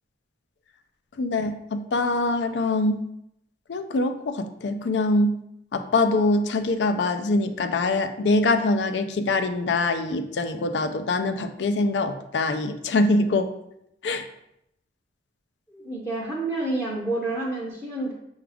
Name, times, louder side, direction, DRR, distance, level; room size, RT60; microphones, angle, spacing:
voice 1, 1.2-3.1 3.7-5.4 5.7-13.5 14.0-14.3, left 2 dB, 75° left, 9 dB, 0.4 m, -24 dB
voice 2, 15.7-18.1, right 2 dB, 10° left, -6 dB, 0.6 m, -29 dB
5.8 x 2.4 x 3.4 m, 0.78 s
head